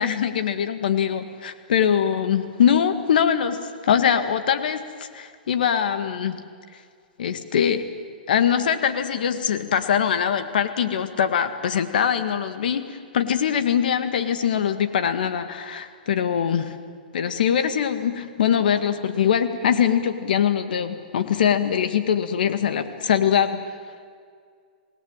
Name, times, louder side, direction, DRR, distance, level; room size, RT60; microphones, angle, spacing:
voice 1, 0.0-6.4 7.2-7.8 8.3-16.8 17.1-23.6, left 8 dB, 70° left, 9 dB, 2.0 m, -22 dB
28.0 x 18.5 x 9.0 m, 2.1 s
hypercardioid pair, 140°, 5 cm